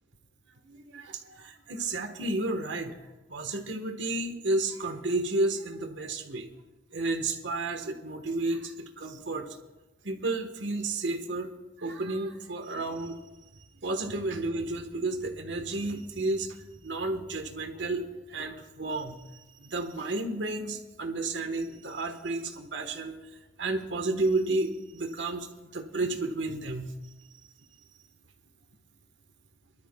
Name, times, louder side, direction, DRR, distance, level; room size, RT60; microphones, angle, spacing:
voice 1, 0.7-3.0 3.3-6.5 6.9-9.5 10.0-11.5 11.8-23.2 23.6-25.5 25.7-26.9, right 2 dB, 80° right, 5 dB, 1.3 m, -32 dB
23.0 x 12.5 x 2.3 m, 1.1 s
head